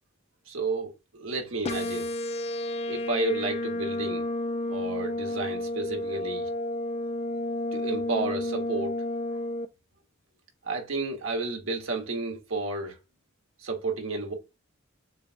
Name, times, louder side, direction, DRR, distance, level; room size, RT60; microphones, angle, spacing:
voice 1, 0.5-2.1 2.9-4.3 4.7-6.5 7.5-8.9 10.6-13.0 13.6-14.3, right 3 dB, 80° right, 1.4 m, -32 dB
sound 1, 1.6-9.7, left 1 dB, 30° left, 0.4 m, -31 dB
6.5 x 2.2 x 2.5 m
head